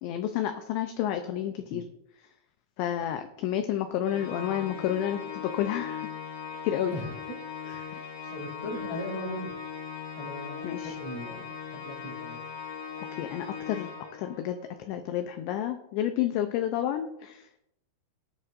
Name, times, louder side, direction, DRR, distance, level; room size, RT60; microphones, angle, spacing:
voice 1, 0.0-1.8 2.8-6.1 6.6-6.9 7.9-8.0 10.6-10.9 13.2-13.9 14.2-17.7, left 11 dB, 80° left, 7 dB, 2.6 m, -30 dB
Organ, 4.0-14.7, left 6 dB, 60° left, 2.4 m, -39 dB
voice 2, 7.6-7.9 8.3-9.6 10.2-12.4, left 1 dB, 40° left, 2 dB, 2.7 m, -38 dB
18.0 x 9.3 x 2.5 m, 0.79 s
omnidirectional pair, 5.7 m